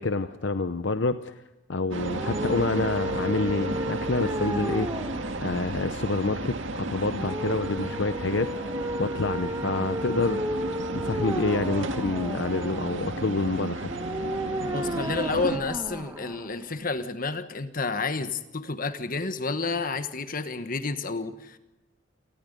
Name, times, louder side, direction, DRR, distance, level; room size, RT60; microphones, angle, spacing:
voice 1, 0.0-1.3 1.7-4.9 5.4-8.5 9.0-10.4 10.9-13.9, left 3 dB, 65° left, 10 dB, 0.8 m, -27 dB
sound 1, 1.9-15.6, right 2 dB, 75° right, 1.9 m, -33 dB
sound 2, 2.1-17.0, equal, 15° right, 1.1 m, -34 dB
voice 2, 14.6-21.6, left 3 dB, 45° left, 10 dB, 1.4 m, -30 dB
28.5 x 19.5 x 5.4 m, 1.0 s
head